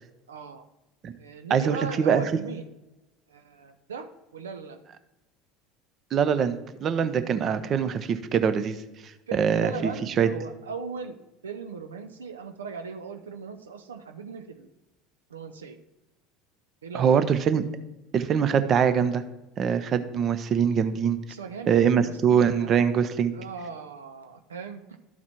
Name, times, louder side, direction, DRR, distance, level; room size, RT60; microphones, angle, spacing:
voice 1, 0.3-0.7 1.2-2.6 3.3-4.8 9.3-11.1 11.4-14.7 15.3-15.8 16.8-17.3 21.3-22.9 23.3-24.8, right 5 dB, 85° right, 6 dB, 0.6 m, -38 dB
voice 2, 1.5-2.2 6.1-8.8 9.3-9.9 10.2-10.3 16.9-17.6 18.1-19.2 19.6-21.2 21.7-23.3, right 7 dB, 40° right, 11 dB, 0.6 m, -23 dB
12.5 x 4.2 x 4.4 m, 0.99 s
hypercardioid pair, 75°, 0 cm